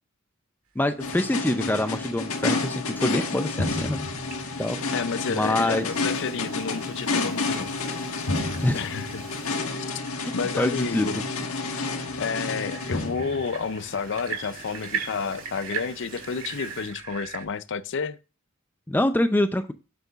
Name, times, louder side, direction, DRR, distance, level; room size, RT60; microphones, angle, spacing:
voice 1, 0.8-4.1 4.6-4.8 5.3-5.9 8.6-8.9 10.6-11.1 18.9-19.7, left 1 dB, 10° left, 0.4 m, -25 dB
sound 1, 1.0-13.7, left 3 dB, 80° left, 1.5 m, -30 dB
sound 2, 1.0-17.5, right 7 dB, 90° right, 1.7 m, -42 dB
sound 3, 4.2-10.0 10.3-10.5 10.8-10.9 11.9-17.0, right 2 dB, 45° right, 4.0 m, -48 dB
voice 2, 4.9-7.7 8.7-9.2 10.3-11.2 12.2-18.2, left 5 dB, 60° left, 0.5 m, -30 dB
8.1 x 7.6 x 2.4 m
head